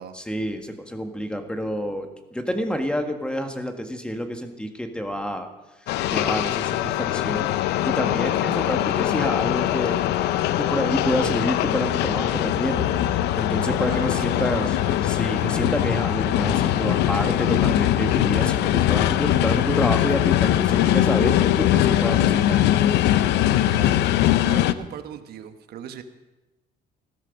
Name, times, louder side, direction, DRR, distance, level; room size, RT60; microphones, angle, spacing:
voice 1, 0.1-5.5 6.1-7.5 7.8-10.3 10.5-14.7 15.2-22.7, equal, 5° left, 5 dB, 1.6 m, -28 dB
sound 1, 5.9-24.7, left 13 dB, 85° left, 0.7 m, -21 dB
sound 2, 12.8-15.4, left 7 dB, 55° left, 3.5 m, -36 dB
voice 2, 13.9-15.0 23.7-26.0, right 8 dB, 70° right, 8 dB, 1.3 m, -38 dB
15.5 x 13.0 x 5.2 m, 1.0 s
cardioid pair, 110°, 17 cm